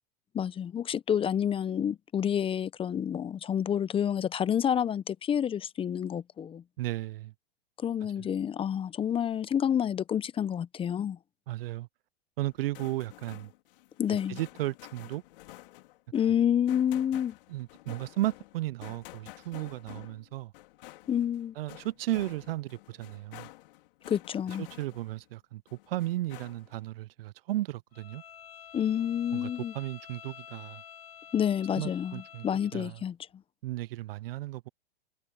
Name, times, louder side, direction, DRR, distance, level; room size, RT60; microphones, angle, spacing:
voice 1, 0.3-6.6 7.8-11.2 14.0-14.4 16.1-17.3 21.1-21.5 24.1-24.7 28.7-29.7 31.3-33.2, left 9 dB, 15° left, 0.7 m, -29 dB
voice 2, 6.8-7.3 8.2-8.3 11.5-11.9 12.4-13.5 14.1-15.2 17.5-20.5 21.6-23.5 24.6-25.6 25.9-28.2 29.3-30.8 31.8-32.5 32.7-33.0 33.6-34.7, right 16 dB, 65° right, 0.6 m, -34 dB
sound 1, 12.5-25.3 25.7-26.9, left 18 dB, 60° left, 4.4 m, -50 dB
Bowed string instrument, 27.9-32.8, left 9 dB, 75° left, 7.6 m, -49 dB
hypercardioid pair, 115°, 31 cm